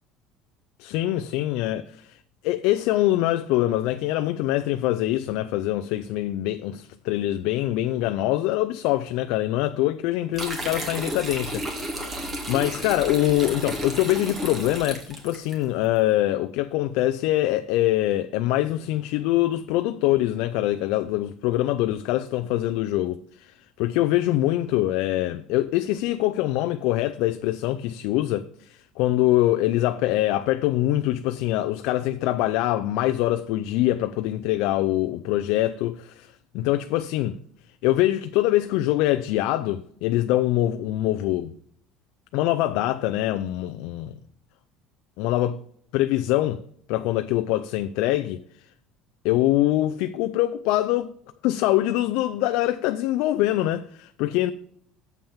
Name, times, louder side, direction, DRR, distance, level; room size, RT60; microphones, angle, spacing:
voice 1, 0.8-2.2 2.4-12.1 12.5-37.4 37.8-41.5 42.3-44.1 45.2-45.6 45.9-46.6 46.9-48.4 49.2-51.1 51.4-54.5, left 15 dB, 75° left, 0.4 m, -24 dB
sound 1, 10.3-15.6, right 1 dB, 25° right, 2.1 m, -32 dB
7.2 x 5.4 x 7.2 m
cardioid pair, 130°, 0 cm